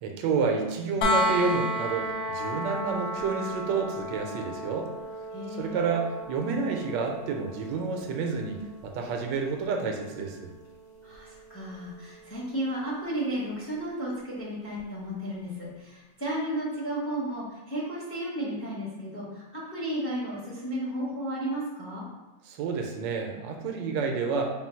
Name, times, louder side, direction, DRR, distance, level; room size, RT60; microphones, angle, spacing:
voice 1, 0.0-4.9 5.5-10.5 22.5-24.5, right 5 dB, 85° right, 3 dB, 1.3 m, -29 dB
sound 1, 1.0-12.8 14.7-14.8, left 1 dB, 65° left, 0.9 m, -34 dB
voice 2, 5.3-5.9 11.0-22.1, right 1 dB, 15° left, -6 dB, 0.6 m, -33 dB
3.9 x 2.2 x 4.3 m, 1.2 s
omnidirectional pair, 1.9 m